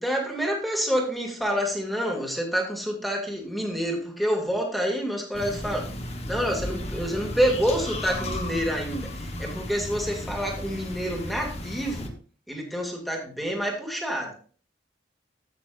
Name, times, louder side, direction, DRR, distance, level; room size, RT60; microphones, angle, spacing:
voice 1, 0.0-5.8 6.3-12.1 12.5-14.3, equal, ahead, 0 dB, 2.2 m, -28 dB
sound 1, 5.3-12.1, left 1 dB, 35° left, 1.2 m, -34 dB
15.0 x 6.7 x 2.5 m, 0.43 s
head